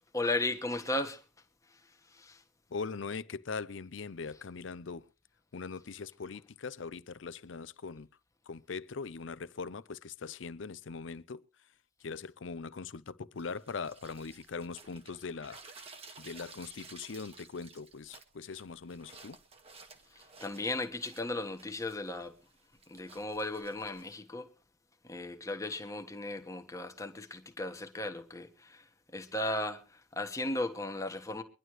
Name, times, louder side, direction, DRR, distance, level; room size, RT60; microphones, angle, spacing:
voice 1, 0.1-1.2 1.7-1.8 2.1-2.4 20.1-22.3 22.9-24.5 25.0-28.9 29.1-31.4, left 2 dB, 15° left, 1.3 m, -36 dB
voice 2, 2.7-5.1 5.5-8.1 8.5-11.4 12.0-15.6 16.2-19.4, left 4 dB, 80° left, 0.6 m, -41 dB
sound 1, 13.4-24.1, right 4 dB, 30° right, 1.5 m, -54 dB
23.5 x 11.0 x 3.1 m
head